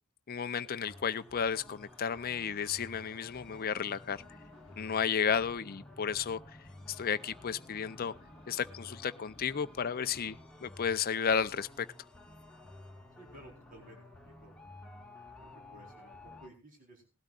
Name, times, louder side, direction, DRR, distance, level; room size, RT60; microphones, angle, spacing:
voice 1, 0.3-4.2 4.8-6.4 6.9-8.1 8.5-11.9, left 7 dB, 45° left, 0.5 m, -33 dB
sound 1, 0.8-16.5, left 2 dB, 5° left, 1.8 m, -53 dB
sound 2, 2.1-10.6, left 1 dB, 30° left, 1.3 m, -59 dB
voice 2, 13.2-14.5 15.1-17.1, right 1 dB, 40° right, 4.2 m, -56 dB
19.0 x 12.5 x 2.5 m
head